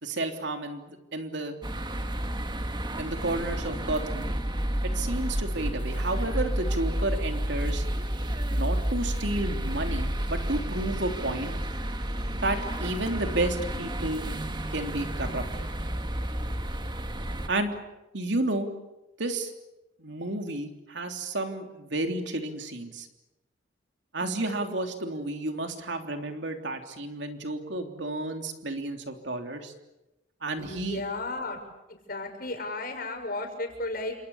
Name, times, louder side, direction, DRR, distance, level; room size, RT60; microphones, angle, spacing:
voice 1, 0.0-1.5 3.0-4.3 4.8-7.8 8.5-11.5 12.4-14.3 14.7-15.7 17.5-17.7 18.1-18.7 19.2-19.5 20.0-23.1 24.1-29.7 30.4-31.0, right 2 dB, 70° right, 5 dB, 3.3 m, -31 dB
sound 1, 1.6-17.5, right 1 dB, 25° right, 1.8 m, -31 dB
voice 2, 30.6-31.6 31.9-34.2, left 2 dB, 55° left, 4 dB, 6.3 m, -34 dB
29.5 x 27.0 x 7.2 m, 0.97 s
head